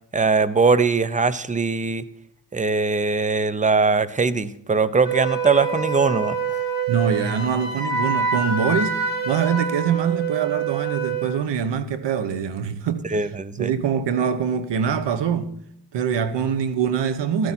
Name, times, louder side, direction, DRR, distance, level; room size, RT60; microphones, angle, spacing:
voice 1, 0.1-2.0 2.5-6.4 13.1-13.7, right 4 dB, 20° right, 0.7 m, -21 dB
Wind instrument woodwind instrument, 5.0-11.4, right 5 dB, 40° right, 5.7 m, -26 dB
voice 2, 6.9-13.3 13.6-15.5 15.9-17.5, right 7 dB, 75° right, 1.2 m, -24 dB
14.0 x 12.5 x 4.3 m
cardioid pair, 90°, 42 cm